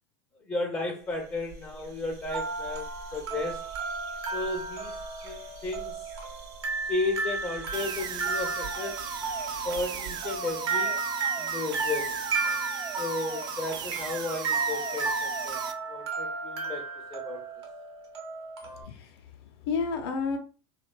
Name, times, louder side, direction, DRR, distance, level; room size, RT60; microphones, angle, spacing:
voice 1, 0.5-3.7 4.3-4.9 5.2-6.1 6.9-9.1 9.6-11.0 11.4-12.2 13.0-15.6 15.9-17.5, left 2 dB, 20° left, 0.5 m, -34 dB
sound 1, 1.0-10.4, right 3 dB, 55° right, 0.8 m, -47 dB
sound 2, 2.3-18.8, right 4 dB, 85° right, 0.8 m, -33 dB
sound 3, 7.7-15.7, right 7 dB, 35° right, 0.4 m, -37 dB
voice 2, 18.6-20.4, left 5 dB, 75° left, 0.6 m, -32 dB
2.5 x 2.3 x 2.2 m
hypercardioid pair, 100°, 13 cm